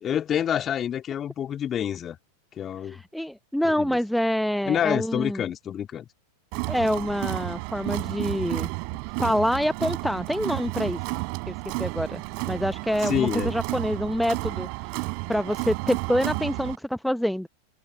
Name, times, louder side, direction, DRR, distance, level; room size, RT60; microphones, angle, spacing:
voice 1, 0.0-2.2 2.6-3.0 3.6-4.0 4.6-6.1 13.0-13.5, left 9 dB, 25° left, 3.0 m, -27 dB
voice 2, 2.8-5.4 6.7-8.7 9.2-11.0 11.5-14.7 15.3-17.5, equal, ahead, 0.8 m, -26 dB
Crowd, 6.5-16.8, right 40 dB or more, 45° right, 5.8 m, -31 dB
figure-of-eight pair, 90°, 0 cm